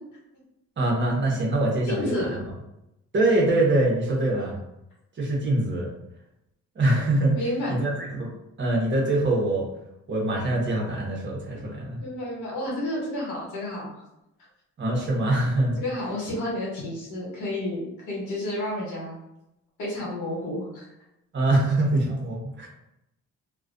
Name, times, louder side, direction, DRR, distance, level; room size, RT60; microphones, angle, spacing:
voice 1, 0.8-2.4 3.1-4.6 5.2-5.9 6.7-7.4 7.7-8.3 8.6-9.7 10.1-12.0 14.8-15.8 21.3-22.7, right 2 dB, 40° right, -2 dB, 0.8 m, -24 dB
voice 2, 1.9-2.4 7.3-7.7 11.6-13.9 15.8-19.2 19.8-20.8, left 1 dB, 85° left, -4 dB, 1.0 m, -31 dB
2.3 x 2.2 x 2.5 m, 0.86 s
cardioid pair, 90°, 30 cm